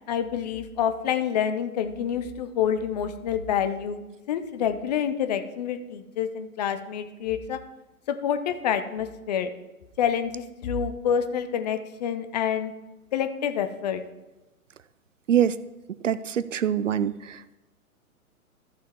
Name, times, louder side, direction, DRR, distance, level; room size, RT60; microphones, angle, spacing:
voice 1, 0.1-4.0 4.3-7.6 8.1-9.5 10.0-12.7 13.1-14.0, left 8 dB, 30° left, 9 dB, 0.7 m, -27 dB
voice 2, 15.3-15.6 16.0-17.6, right 9 dB, 60° right, 17 dB, 0.5 m, -24 dB
14.0 x 6.6 x 3.5 m, 1.0 s
figure-of-eight pair, 115°, 43 cm